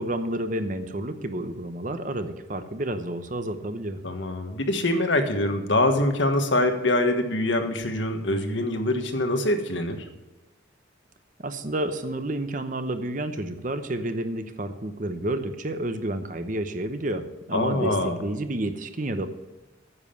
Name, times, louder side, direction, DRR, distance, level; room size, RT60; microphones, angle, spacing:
voice 1, 0.0-4.0 11.4-19.3, right 1 dB, 40° right, 9 dB, 0.9 m, -30 dB
voice 2, 4.0-10.0 17.5-18.2, left 1 dB, 75° left, 6 dB, 1.5 m, -24 dB
9.7 x 7.4 x 7.0 m, 1.1 s
head